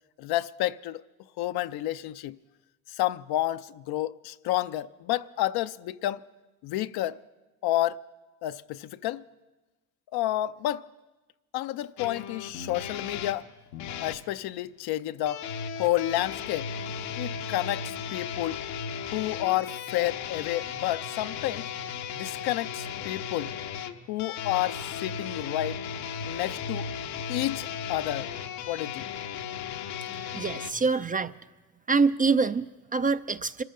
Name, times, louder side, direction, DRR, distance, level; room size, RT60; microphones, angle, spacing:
voice 1, 0.2-1.0 1.4-2.4 2.9-6.2 6.6-7.2 7.6-8.0 8.4-9.2 10.1-10.9 11.5-13.4 14.0-15.4 15.8-16.7 17.2-18.6 19.1-21.7 22.1-23.5 24.1-25.8 26.3-26.9 27.3-28.3 28.7-29.1, left 14 dB, 55° left, 0.7 m, -30 dB
sound 1, 12.0-14.2 15.3-30.7, left 7 dB, 75° left, 1.2 m, -36 dB
voice 2, 30.3-31.3 31.9-33.6, right 4 dB, 20° right, 0.4 m, -25 dB
26.0 x 14.0 x 3.8 m
hypercardioid pair, 60°, 44 cm